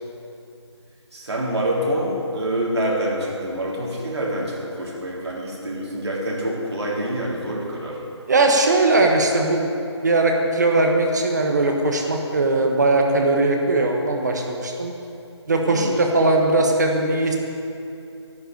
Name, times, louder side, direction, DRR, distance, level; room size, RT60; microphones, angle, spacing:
voice 1, 1.1-8.0 15.7-16.0, right 1 dB, 65° right, -4 dB, 3.7 m, -26 dB
voice 2, 8.3-9.6 10.0-14.9 15.5-17.4, right 2 dB, 40° right, 2 dB, 1.4 m, -19 dB
11.0 x 7.9 x 9.3 m, 2.7 s
figure-of-eight pair, 175°, 15 cm